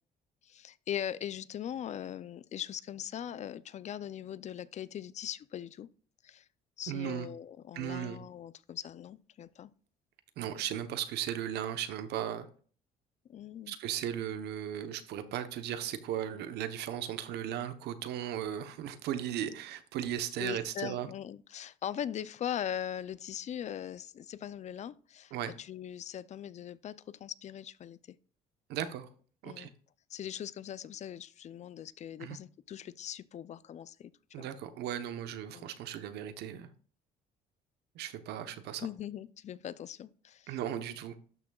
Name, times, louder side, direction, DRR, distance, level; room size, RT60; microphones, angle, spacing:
voice 1, 0.4-5.9 6.2-6.5 6.8-9.7 13.3-13.7 20.4-28.2 29.4-29.7 30.1-34.1 34.4-34.5 35.5-35.7 38.8-40.6, left 10 dB, 45° left, 0.4 m, -40 dB
voice 2, 6.9-7.3 7.7-8.2 10.4-12.5 13.7-21.1 25.3-25.5 28.7-29.1 29.4-29.7 32.2-32.4 34.3-36.7 37.9-38.9 40.5-41.2, right 10 dB, 80° right, 0.9 m, -36 dB
12.5 x 6.0 x 2.3 m
cardioid pair, 110°, 17 cm